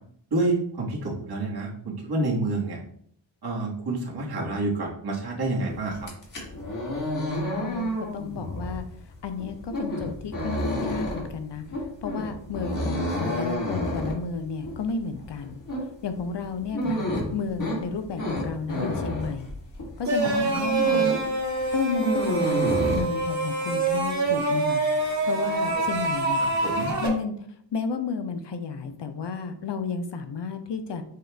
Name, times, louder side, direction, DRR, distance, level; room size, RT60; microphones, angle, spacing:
voice 1, 0.3-2.8 3.4-6.1 16.8-16.9 20.2-20.6 25.7-25.8 26.4-26.9, right 2 dB, 55° right, -4 dB, 1.4 m, -28 dB
sound 1, 5.9-20.0 20.4-21.3 21.6-23.0, left 1 dB, 45° left, 1.6 m, -30 dB
voice 2, 7.6-8.8 9.2-11.6 12.0-15.6 16.0-19.5 20.0-21.1 21.7-24.8 25.3-26.4 27.0-27.3 27.7-31.0, left 5 dB, 65° left, 8 dB, 0.6 m, -32 dB
sound 2, 20.0-27.1, right 3 dB, 35° right, 1.3 m, -25 dB
6.5 x 2.4 x 3.3 m, 0.65 s
wide cardioid pair, 125°, 45 cm